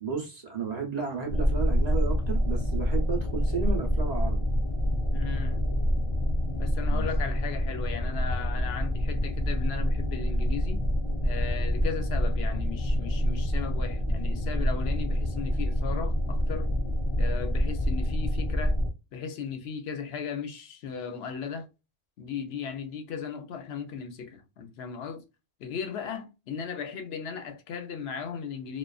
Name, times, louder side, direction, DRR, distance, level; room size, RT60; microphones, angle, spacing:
voice 1, 0.0-4.4 6.9-7.1, right 5 dB, 45° right, 0.7 m, -33 dB
sound 1, 1.3-18.9, equal, 35° left, 0.6 m, -27 dB
voice 2, 5.1-5.6 6.6-10.8 11.2-16.7 17.2-18.8 19.1-21.7 22.2-25.2 25.6-28.8, left 6 dB, 75° left, 0.8 m, -36 dB
2.4 x 2.3 x 2.2 m
omnidirectional pair, 1.1 m